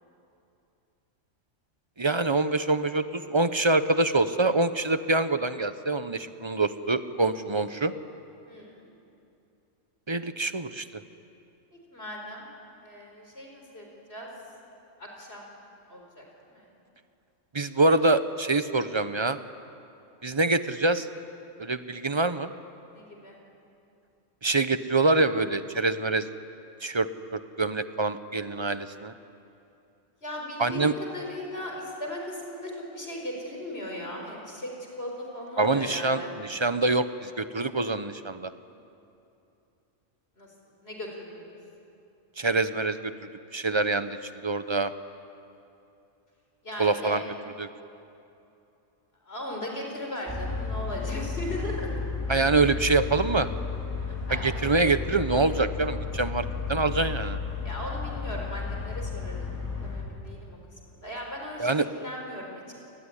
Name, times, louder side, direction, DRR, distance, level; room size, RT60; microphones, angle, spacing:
voice 1, 2.0-7.9 10.1-11.0 17.5-19.4 20.2-21.1 21.6-22.5 24.4-26.3 26.8-29.1 30.6-30.9 35.6-38.5 42.4-43.1 43.5-44.2 44.4-44.9 46.8-47.2 47.6-47.7 52.3-53.5 54.3-57.4 61.6-61.9, right 3 dB, 25° right, 11 dB, 0.8 m, -25 dB
voice 2, 8.5-8.9 11.9-12.5 12.8-14.3 15.0-15.5 15.9-16.7 22.9-23.4 30.2-34.7 35.0-36.3 40.4-40.5 40.8-41.6 46.6-47.2 49.2-51.9 54.0-54.7 57.6-60.6 60.8-62.6, left 1 dB, 50° left, 0 dB, 4.7 m, -38 dB
sound 1, 50.3-60.0, left 4 dB, 15° left, 3.9 m, -33 dB
28.5 x 20.5 x 9.9 m, 2.8 s
omnidirectional pair, 1.3 m